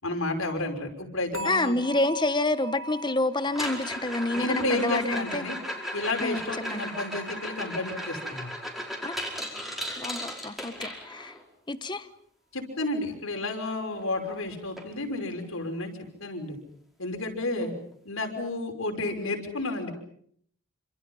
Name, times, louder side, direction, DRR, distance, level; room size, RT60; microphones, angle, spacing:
voice 1, 0.0-1.7 4.4-5.6 5.9-8.5 12.5-15.9 16.2-16.6 17.0-17.7 18.0-19.9, left 2 dB, 70° left, 3 dB, 5.8 m, -31 dB
sound 1, 1.3-8.4 8.7-9.1 9.6-9.7, equal, 80° right, 2.4 m, -43 dB
voice 2, 1.4-5.4 6.2-6.4 6.7-6.9 9.0-9.1 10.0-11.3 11.7-12.1 17.6-17.7, left 2 dB, 20° left, 12 dB, 1.2 m, -28 dB
sound 2, 3.4-11.4 13.7-13.8 14.0-14.3 14.8-14.9 15.4-15.5 17.4-17.5, equal, ahead, 5.1 m, -36 dB
28.0 x 27.0 x 5.6 m, 0.66 s
head